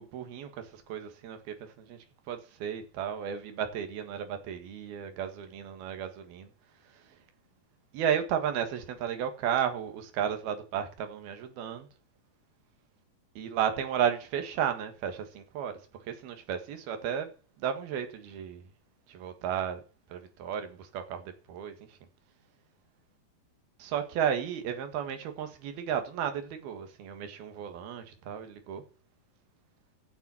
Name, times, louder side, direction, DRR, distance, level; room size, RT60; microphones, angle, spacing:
voice 1, 0.0-2.0 2.3-6.5 7.9-11.9 13.4-15.8 16.1-17.3 17.6-18.6 19.1-19.8 20.1-21.8 23.8-28.8, right 8 dB, 80° right, 3.6 m, -33 dB
16.0 x 7.4 x 4.4 m
omnidirectional pair, 4.4 m